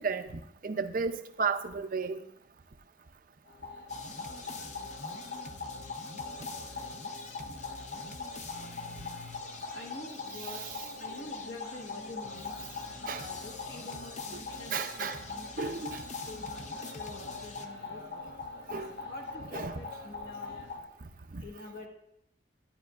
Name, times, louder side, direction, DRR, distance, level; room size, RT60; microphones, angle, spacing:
voice 1, 0.0-2.2 10.4-10.7 13.1-13.3 14.3-14.4 14.7-15.2 15.6-16.0 18.7-18.9 19.5-19.8 21.3-21.4, right 5 dB, 45° right, 0.5 m, -33 dB
sound 1, 3.5-20.8, left 3 dB, 75° left, 1.4 m, -42 dB
sound 2, 3.9-17.7, left 3 dB, 40° left, 0.7 m, -46 dB
voice 2, 9.7-10.6 11.0-12.6 13.1-15.7 16.3-18.2 18.7-20.6 21.4-21.9, left 3 dB, 60° left, 1.3 m, -46 dB
11.5 x 10.0 x 2.4 m
head